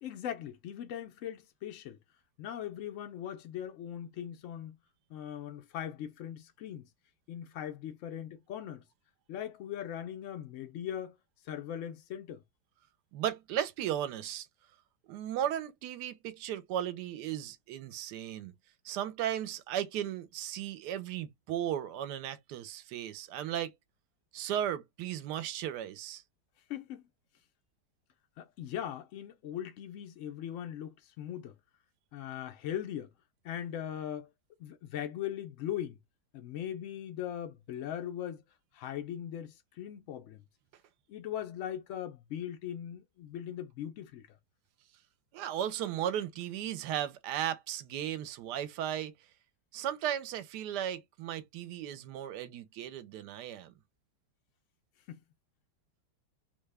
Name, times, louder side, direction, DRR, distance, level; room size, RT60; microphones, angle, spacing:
voice 1, 0.0-2.0 2.4-4.8 5.1-6.9 7.3-8.8 9.3-11.2 11.4-12.4 26.7-27.0 28.4-31.6 32.1-33.1 33.4-34.3 34.6-36.0 36.3-38.4 38.7-40.4 41.1-44.4 55.1-55.2, left 10 dB, 75° left, 0.7 m, -40 dB
voice 2, 13.1-14.5 15.1-18.5 18.8-23.7 24.3-26.2 45.3-49.1 49.7-53.7, right 10 dB, 75° right, 1.1 m, -36 dB
3.5 x 2.2 x 3.2 m
omnidirectional pair, 1.9 m